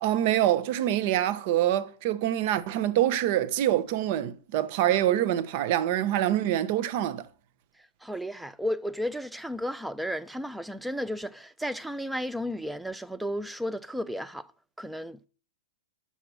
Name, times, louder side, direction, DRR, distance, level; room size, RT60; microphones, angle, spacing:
voice 1, 0.0-7.3, right 12 dB, 50° right, 0.6 m, -25 dB
voice 2, 8.0-14.5 14.8-15.3, equal, 5° right, 0.4 m, -33 dB
5.9 x 5.6 x 6.0 m
hypercardioid pair, 120°, 0 cm